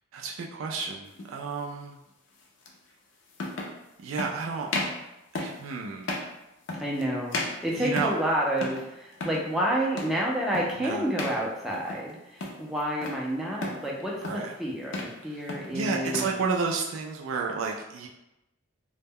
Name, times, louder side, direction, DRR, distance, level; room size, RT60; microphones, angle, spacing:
voice 1, 0.1-2.0 4.0-4.7 5.3-6.1 7.8-8.1 10.8-11.0 14.2-14.5 15.3-15.4 15.7-18.1, right 4 dB, 75° right, 0 dB, 0.3 m, -31 dB
sound 1, 1.1-1.3 2.7-2.8 3.3-3.8 4.2-4.4 4.7-5.0 5.4-5.6 6.0-6.3 6.7-7.0 7.3-8.3 8.6-8.9 9.1-9.5 10.0-10.2 10.5-10.8 11.2-11.4 11.7-12.1 12.4-13.2 13.6-13.9 14.2-14.5 14.8-15.2 15.5-16.4, left 2 dB, 60° left, 0.4 m, -34 dB
voice 2, 6.7-16.4, right 1 dB, ahead, -4 dB, 0.4 m, -29 dB
2.1 x 2.1 x 3.5 m, 0.91 s
head